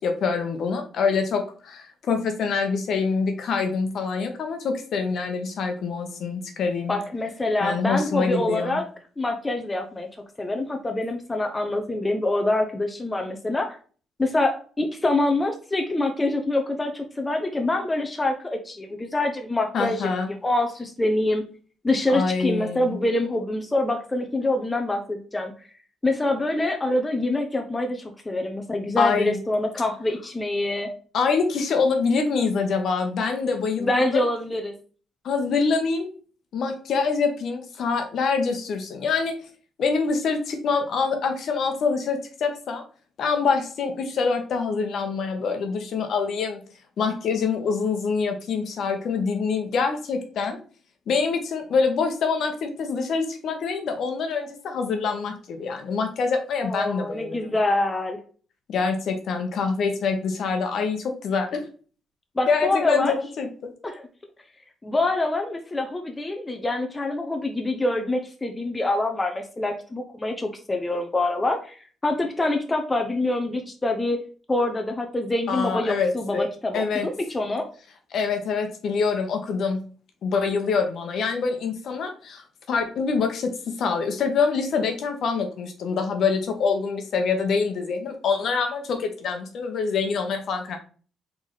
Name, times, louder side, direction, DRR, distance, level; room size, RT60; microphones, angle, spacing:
voice 1, 0.0-7.0 7.6-8.8 19.7-20.3 22.1-23.0 29.0-29.4 31.1-34.0 35.2-36.1 36.5-39.4 39.8-42.8 43.2-46.6 47.0-50.6 51.1-57.5 58.7-61.6 62.5-63.5 75.5-76.5 76.7-77.1 78.1-79.8 80.2-90.8, left 5 dB, 65° left, 5 dB, 1.0 m, -25 dB
voice 2, 6.9-8.8 9.2-10.1 10.4-13.8 14.2-21.4 21.8-25.5 26.0-30.9 33.8-34.7 56.6-58.2 62.4-63.2 63.8-64.0 64.8-77.7, left 2 dB, 20° left, 4 dB, 0.7 m, -25 dB
4.2 x 3.6 x 3.1 m, 0.40 s
cardioid pair, 90°, 0 cm